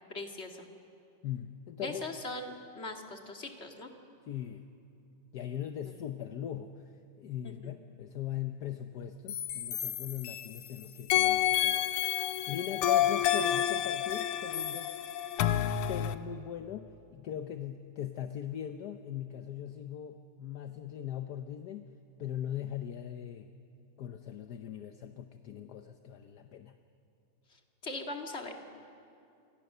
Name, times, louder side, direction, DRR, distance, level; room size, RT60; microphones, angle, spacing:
voice 1, 0.1-0.7 1.8-3.9 5.8-5.9 7.4-7.5 27.8-28.6, left 2 dB, 30° left, 3 dB, 2.2 m, -40 dB
voice 2, 1.2-2.0 4.3-4.7 5.3-15.0 15.9-21.9 22.2-23.5 24.0-26.8, left 10 dB, 60° left, 7 dB, 1.2 m, -40 dB
sound 1, 9.3-10.7 11.1-16.2, left 11 dB, 85° left, 1.8 m, -29 dB
29.0 x 25.5 x 6.7 m, 2.6 s
omnidirectional pair, 2.4 m